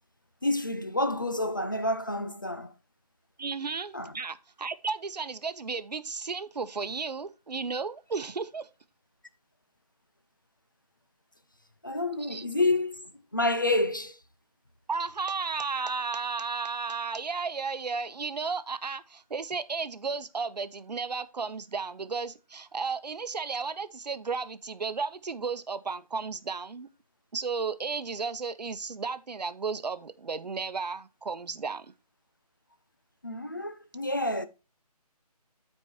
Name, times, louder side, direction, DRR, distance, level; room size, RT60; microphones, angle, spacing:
voice 1, 0.4-2.7 3.9-4.1 11.8-14.2 33.2-34.5, left 2 dB, 30° left, 0.4 m, -29 dB
voice 2, 3.4-8.7 12.2-12.4 14.9-26.9 27.3-31.9, right 4 dB, 85° right, 0.8 m, -34 dB
12.5 x 4.5 x 2.9 m
figure-of-eight pair, 175°, 21 cm